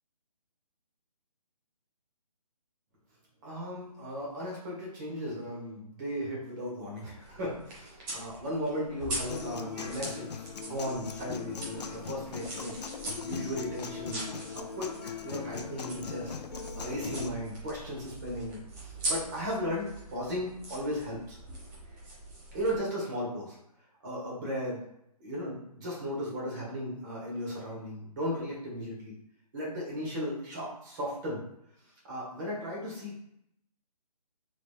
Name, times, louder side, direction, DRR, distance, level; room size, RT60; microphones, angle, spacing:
voice 1, 3.4-12.8 13.2-14.2 14.5-16.3 16.7-21.4 22.5-23.6 24.0-24.8 25.2-29.1 29.5-31.4 32.0-33.1, equal, 30° right, -5 dB, 1.4 m, -36 dB
sound 1, 7.2-22.8, right 2 dB, 10° right, 0.5 m, -42 dB
Human voice / Acoustic guitar, 9.3-17.3, left 6 dB, 90° left, 0.4 m, -40 dB
3.8 x 3.3 x 2.2 m, 0.77 s
figure-of-eight pair, 155°, 21 cm